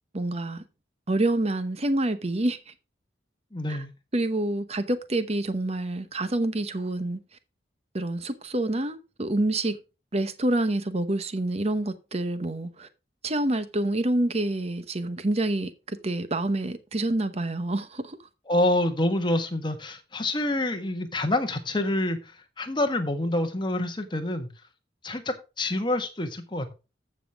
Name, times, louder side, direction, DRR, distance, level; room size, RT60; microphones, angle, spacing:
voice 1, 0.1-0.6 1.1-2.7 3.7-3.8 4.1-7.2 7.9-9.8 10.1-12.9 13.2-18.2, right 1 dB, 35° right, 1.0 m, -27 dB
voice 2, 3.5-3.9 18.5-24.5 25.0-26.7, left 1 dB, 25° left, 1.5 m, -27 dB
14.5 x 5.9 x 3.4 m
head